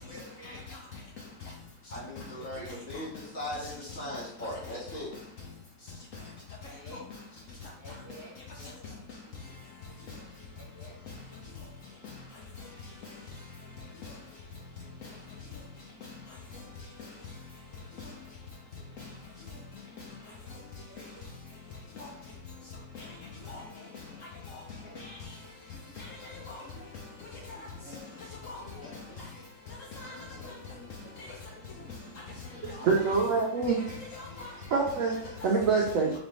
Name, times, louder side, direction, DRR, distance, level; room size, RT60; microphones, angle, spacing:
voice 1, 0.1-0.6 2.4-3.0 6.6-7.0 7.8-8.3 8.6-8.8 9.4-9.5 10.5-10.9 19.9-20.0 20.9-21.0 21.4-21.6 22.6-22.7 23.6-23.8 24.4-24.5 24.8-25.0 25.6-26.0 26.6-26.9 27.3-27.4 27.8-28.2 28.8-29.4 30.3-31.2 31.8-31.9 33.6-33.8 34.3-34.4 35.3-35.4, equal, 5° right, 1.0 m, -52 dB
voice 2, 1.9-5.1 27.8-28.0 28.7-29.2 30.0-30.9 31.5-32.0 32.6-32.7 33.0-33.7, left 1 dB, 50° left, 1.7 m, -41 dB
voice 3, 26.0-26.6 27.5-27.6 28.4-28.6 29.2-29.3 29.9-30.2 30.4-30.5 31.2-31.3 32.7-33.2 33.9-34.5, left 3 dB, 85° left, 0.7 m, -42 dB
voice 4, 32.6-33.8 34.7-35.2 35.4-36.1, right 4 dB, 85° right, 0.7 m, -25 dB
4.1 x 3.0 x 3.1 m
omnidirectional pair, 2.0 m